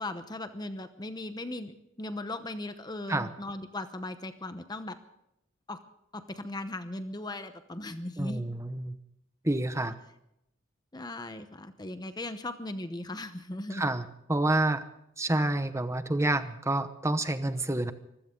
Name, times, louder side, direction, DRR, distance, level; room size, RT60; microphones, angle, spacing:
voice 1, 0.0-5.0 5.7-5.8 6.1-8.4 10.9-13.9, left 2 dB, 20° left, 9 dB, 0.8 m, -38 dB
voice 2, 8.2-9.0 9.4-9.9 13.7-14.8 15.2-17.9, right 2 dB, 15° right, 11 dB, 0.9 m, -28 dB
24.0 x 16.0 x 3.8 m, 0.81 s
head